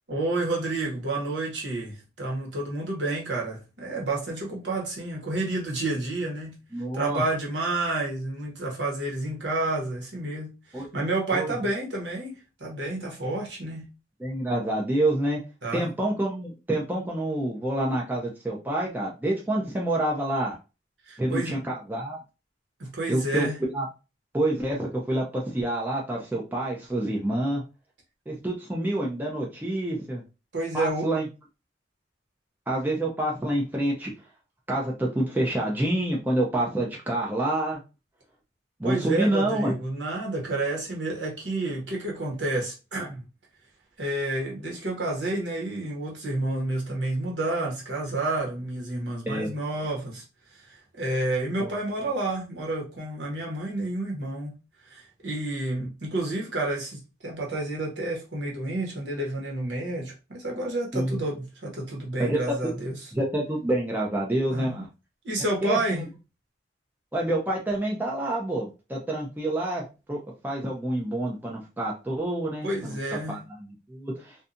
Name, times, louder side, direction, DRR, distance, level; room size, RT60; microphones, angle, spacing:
voice 1, 0.1-6.5 6.9-13.9 15.6-15.9 21.1-21.5 22.8-23.6 30.5-31.1 38.8-43.2 44.0-50.2 50.5-54.5 54.9-63.0 64.5-64.8 65.2-66.1 72.6-73.4, right 2 dB, 70° right, 1.0 m, -30 dB
voice 2, 6.7-7.2 10.7-10.9 11.3-11.5 14.2-15.4 15.7-20.6 21.2-22.2 23.1-23.9 24.3-27.6 28.3-30.2 30.7-31.3 32.7-34.1 34.7-37.8 38.8-39.7 49.3-49.5 51.6-51.7 60.9-61.2 62.2-62.5 63.1-64.9 65.6-66.0 67.1-72.9 73.3-74.4, right 1 dB, 10° right, 0.4 m, -27 dB
2.7 x 2.2 x 2.5 m
head